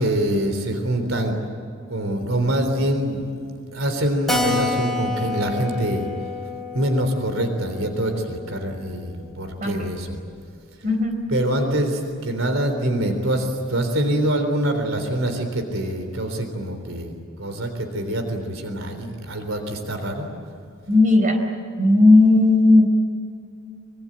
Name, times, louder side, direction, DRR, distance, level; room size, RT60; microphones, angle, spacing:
voice 1, 0.0-1.4 1.9-3.3 3.7-6.1 6.7-10.2 11.3-17.1 17.4-20.3, right 1 dB, 75° right, 6 dB, 3.7 m, -24 dB
Keyboard (musical), 4.3-9.3 9.6-9.7 10.0-10.1 10.3-10.4 11.0-11.4, left 3 dB, ahead, 2.9 m, -29 dB
voice 2, 9.6-9.9 10.8-11.2 20.9-21.4 21.8-22.8, left 2 dB, 40° right, 4 dB, 4.3 m, -15 dB
25.0 x 24.5 x 9.0 m, 2.4 s
head